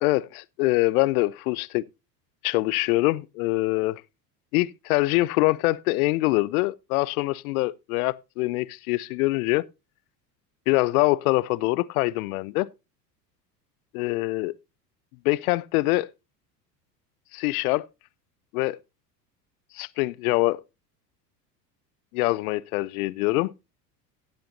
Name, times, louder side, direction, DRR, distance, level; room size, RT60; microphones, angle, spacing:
voice 1, 0.0-1.8 2.4-4.0 4.5-9.7 10.7-12.7 13.9-14.5 15.2-16.1 17.3-17.8 18.5-18.8 19.7-20.6 22.1-23.5, left 20 dB, 60° left, 0.7 m, -24 dB
17.0 x 7.7 x 2.6 m
hypercardioid pair, 75°, 49 cm